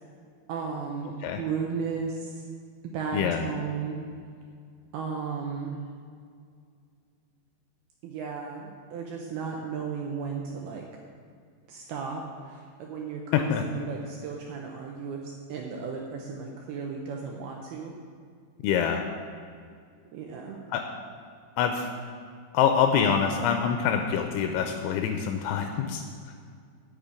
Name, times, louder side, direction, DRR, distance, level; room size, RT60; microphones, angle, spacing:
voice 1, 0.5-2.5 2.8-4.0 4.9-5.8 8.0-10.8 11.7-18.0 20.1-20.6, right 5 dB, 80° right, 0 dB, 2.3 m, -35 dB
voice 2, 3.1-3.5 13.3-13.6 18.6-19.0 20.7-20.8 21.6-21.9 22.5-26.0, left 7 dB, 85° left, 5 dB, 2.9 m, -25 dB
8.9 x 6.8 x 8.2 m, 2.2 s
omnidirectional pair, 5.5 m